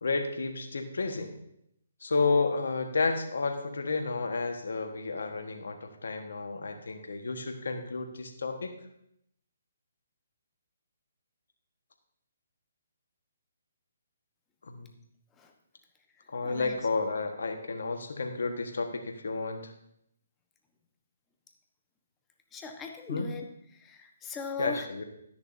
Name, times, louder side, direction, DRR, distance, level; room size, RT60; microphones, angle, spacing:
voice 1, 0.0-1.3 2.0-8.7 14.6-14.9 16.3-19.7 23.1-23.3 24.6-25.0, left 3 dB, 75° left, 5 dB, 1.4 m, -31 dB
voice 2, 16.2-16.8 22.5-24.9, left 4 dB, 15° left, 3 dB, 1.2 m, -40 dB
12.0 x 10.5 x 2.7 m, 0.76 s
hypercardioid pair, 145°, 0 cm